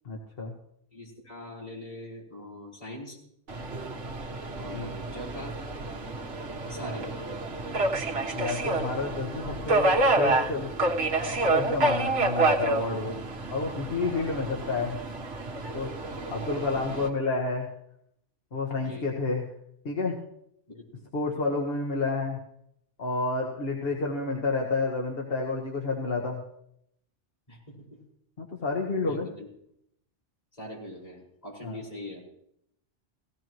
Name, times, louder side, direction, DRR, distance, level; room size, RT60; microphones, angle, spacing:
voice 1, 0.1-0.5 4.7-4.9 8.3-10.7 11.1-13.2 13.5-15.0 15.7-15.9 16.3-17.7 18.5-19.5 19.9-20.2 21.1-22.4 23.0-26.4 28.4-29.3 31.6-31.8, left 3 dB, 55° left, 0 dB, 1.7 m, -30 dB
voice 2, 0.9-3.2 4.6-5.6 6.7-7.2 14.6-14.7 18.8-19.1 20.7-21.0 21.4-21.6 27.5-28.0 29.0-29.5 30.5-32.2, left 1 dB, 35° left, -4 dB, 5.1 m, -42 dB
Subway metro underground, 3.5-17.1, right 2 dB, 75° right, 1.7 m, -29 dB
17.5 x 16.5 x 3.1 m, 0.74 s
omnidirectional pair, 1.2 m